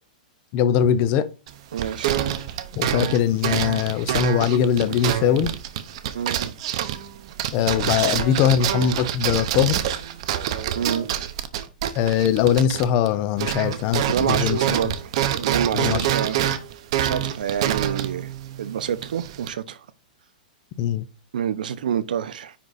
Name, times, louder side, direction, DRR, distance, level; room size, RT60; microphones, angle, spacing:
voice 1, 0.5-1.3 2.8-5.5 7.5-9.8 11.9-14.6 15.7-16.0 20.8-21.0, left 9 dB, 25° left, 0.5 m, -21 dB
sound 1, 1.5-13.1 13.4-19.5, right 11 dB, 40° right, 0.8 m, -26 dB
voice 2, 1.7-2.2 6.1-6.5 10.7-11.1 14.1-16.4 17.0-18.3 18.6-19.8 21.3-22.5, right 8 dB, 75° right, 0.9 m, -27 dB
9.8 x 4.0 x 4.1 m
supercardioid pair, 175°, 5 cm